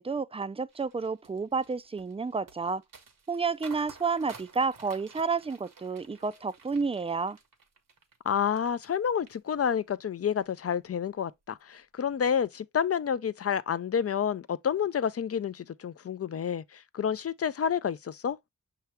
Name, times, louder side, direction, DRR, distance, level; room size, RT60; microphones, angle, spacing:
voice 1, 0.0-2.8 3.3-7.4, right 4 dB, 20° right, 0.3 m, -30 dB
sound 1, 0.7-9.0 9.3-9.9 10.3-10.6, right 5 dB, 70° right, 1.0 m, -52 dB
voice 2, 8.2-18.4, left 8 dB, 45° left, 0.4 m, -29 dB
5.8 x 2.9 x 3.2 m
wide cardioid pair, 65°, 34 cm